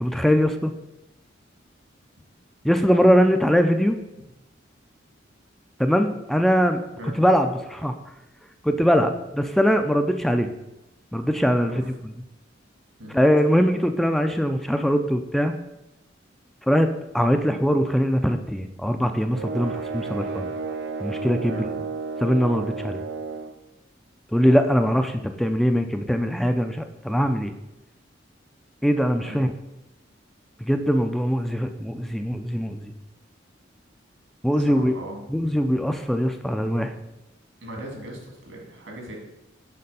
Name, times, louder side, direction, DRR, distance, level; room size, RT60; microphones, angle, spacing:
voice 1, 0.0-0.7 2.6-4.0 5.8-6.8 7.2-7.9 8.6-10.5 11.1-12.1 13.1-15.5 16.7-20.5 21.0-21.6 22.2-23.0 24.3-27.5 28.8-29.5 30.6-32.9 34.4-34.9 35.3-36.9, equal, ahead, 7 dB, 0.3 m, -21 dB
sound 1, 19.3-23.6, right 4 dB, 65° right, 0.5 m, -32 dB
voice 2, 34.7-35.2 37.6-39.2, right 1 dB, 85° right, 1 dB, 2.0 m, -38 dB
6.6 x 4.3 x 5.4 m, 0.93 s
head